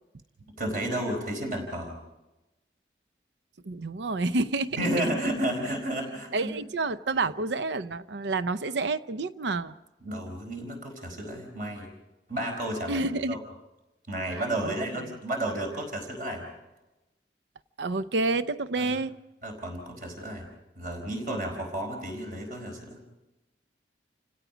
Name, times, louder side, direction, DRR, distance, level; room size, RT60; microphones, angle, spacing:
voice 1, 0.6-1.9 4.7-6.3 10.0-11.9 12.3-13.4 14.1-16.4 18.8-18.9 19.4-20.4 20.8-23.0, right 1 dB, 50° right, 4.5 m, -32 dB
voice 2, 3.6-4.8 6.3-9.7 12.9-13.4 14.6-15.1 17.8-19.1, right 3 dB, 75° right, 0.6 m, -29 dB
30.0 x 17.0 x 5.1 m
head